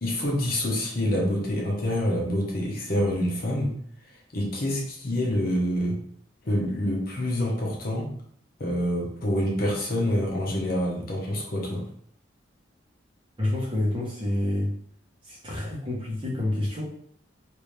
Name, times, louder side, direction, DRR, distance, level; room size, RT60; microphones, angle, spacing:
voice 1, 0.0-3.7 4.3-6.0 6.4-8.1 8.6-11.8, left 1 dB, 50° left, -2 dB, 0.9 m, -26 dB
voice 2, 13.4-14.7 15.2-16.8, left 1 dB, 25° right, -4 dB, 1.0 m, -28 dB
3.2 x 2.6 x 3.2 m, 0.64 s
head